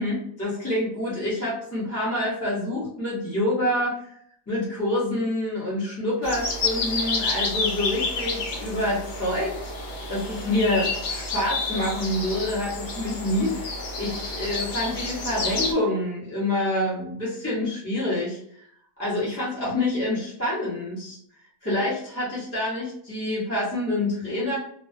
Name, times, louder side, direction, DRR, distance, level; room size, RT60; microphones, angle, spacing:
voice 1, 0.0-4.1 4.5-9.7 10.1-18.7 19.0-21.2 21.6-24.6, left 1 dB, 15° left, -9 dB, 0.6 m, -27 dB
sound 1, 6.2-15.7, left 3 dB, 70° left, 0.9 m, -30 dB
2.3 x 2.2 x 2.5 m, 0.68 s
omnidirectional pair, 1.4 m